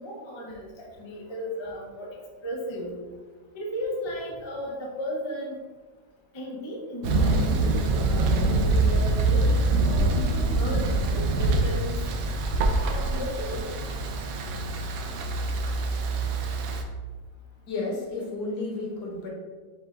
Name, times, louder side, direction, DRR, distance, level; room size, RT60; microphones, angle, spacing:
voice 1, 0.0-2.1 2.4-3.0 3.5-5.6 6.3-7.4 7.8-12.0 12.9-13.7, equal, 40° left, -2 dB, 0.4 m, -35 dB
Thunder, 7.0-16.8, right 2 dB, 70° right, 0.9 m, -24 dB
voice 2, 17.7-19.3, left 2 dB, 65° left, -3 dB, 1.6 m, -32 dB
5.6 x 2.3 x 3.8 m, 1.4 s
omnidirectional pair, 1.9 m